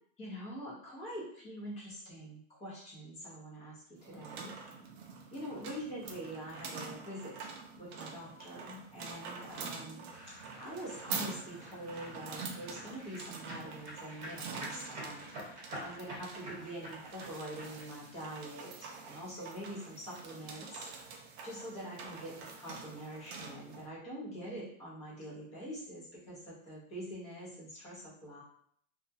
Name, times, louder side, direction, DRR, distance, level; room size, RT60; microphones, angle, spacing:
voice 1, 0.2-4.5 5.3-7.5 7.8-10.1 10.6-20.9 21.4-28.4, equal, 15° left, -7 dB, 0.6 m, -45 dB
sound 1, 4.0-23.8, right 5 dB, 55° right, 0.5 m, -46 dB
sound 2, 10.1-17.8, equal, 35° right, 1.1 m, -48 dB
2.4 x 2.1 x 2.6 m, 0.65 s
supercardioid pair, 170°, 40 cm